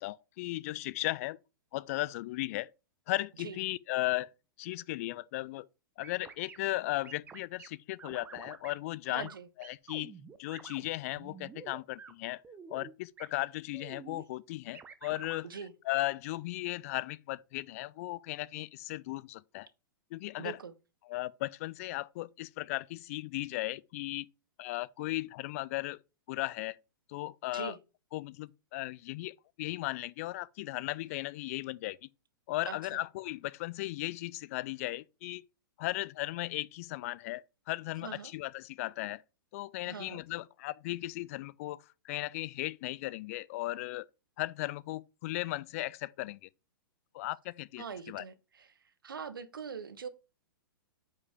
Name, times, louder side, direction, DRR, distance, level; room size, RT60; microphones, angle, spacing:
voice 1, 0.0-1.4 1.7-2.7 3.1-4.3 4.6-5.7 6.0-9.3 9.6-10.1 10.4-12.4 12.7-15.5 15.9-19.7 20.1-20.6 21.1-24.3 24.6-26.0 26.3-26.8 27.1-27.8 28.1-32.0 32.5-35.4 35.8-39.2 39.5-41.8 42.0-44.0 44.4-46.5 47.1-48.2, left 18 dB, 40° left, 0.4 m, -36 dB
sound 1, 6.0-6.6 7.0-7.7 8.0-8.7 9.2-9.4 9.6-10.9 11.2-12.1 12.4-12.9 13.2-13.3 13.7-14.2 14.7-15.4, right 6 dB, 15° right, 0.8 m, -49 dB
voice 2, 9.1-9.5 15.4-15.7 20.4-20.7 27.5-27.8 32.6-33.0 38.0-38.3 39.8-40.2 47.8-48.8 49.0-50.1, right 6 dB, 75° right, 1.0 m, -42 dB
9.5 x 5.2 x 3.5 m
figure-of-eight pair, 110°, 12 cm